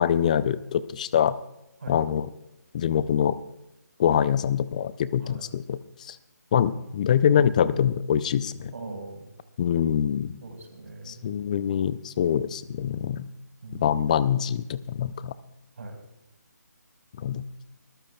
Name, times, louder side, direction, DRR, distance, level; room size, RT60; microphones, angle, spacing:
voice 1, 0.0-1.4 1.9-2.3 2.7-3.4 4.0-6.2 6.5-8.7 9.6-10.3 11.1-13.3 13.8-15.3 17.2-17.4, left 9 dB, 25° left, 17 dB, 0.4 m, -24 dB
voice 2, 8.7-9.3 10.4-11.3 13.6-13.9 15.8-16.0, right 2 dB, 50° right, 3 dB, 4.5 m, -40 dB
22.0 x 14.5 x 2.3 m, 0.88 s
figure-of-eight pair, 150°, 10 cm